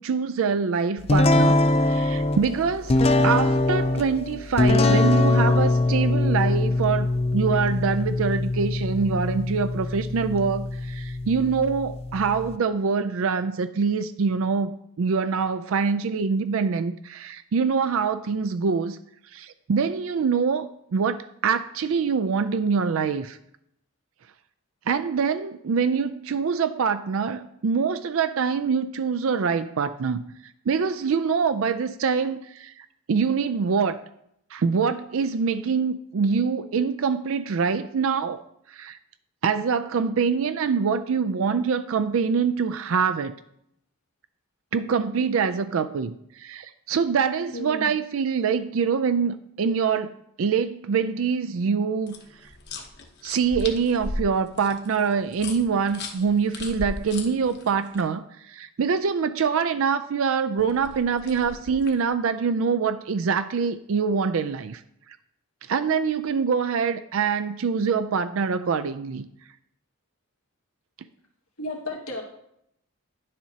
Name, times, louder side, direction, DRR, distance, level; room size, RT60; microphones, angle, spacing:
voice 1, 0.0-19.0 19.3-23.4 24.9-34.0 34.5-38.4 38.7-39.0 39.4-43.3 44.7-52.1 53.2-64.8 65.7-69.3, right 5 dB, 70° right, 11 dB, 0.4 m, -25 dB
sound 1, 1.1-12.6, left 2 dB, 25° left, 0.4 m, -23 dB
voice 2, 47.5-47.9 71.6-72.2, left 2 dB, 85° left, 0 dB, 1.8 m, -33 dB
sound 2, 52.1-58.0 60.6-62.1, left 2 dB, 50° left, 0.9 m, -37 dB
10.5 x 7.4 x 2.8 m, 0.74 s
head